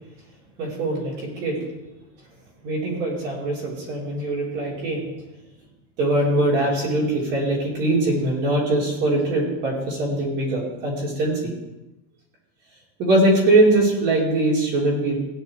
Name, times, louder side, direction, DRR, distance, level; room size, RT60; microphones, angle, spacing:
voice 1, 0.6-1.6 2.6-5.1 6.0-11.5 13.0-15.2, right 2 dB, 35° right, -4 dB, 4.3 m, -22 dB
16.5 x 10.0 x 3.5 m, 0.98 s
supercardioid pair, 170°, 33 cm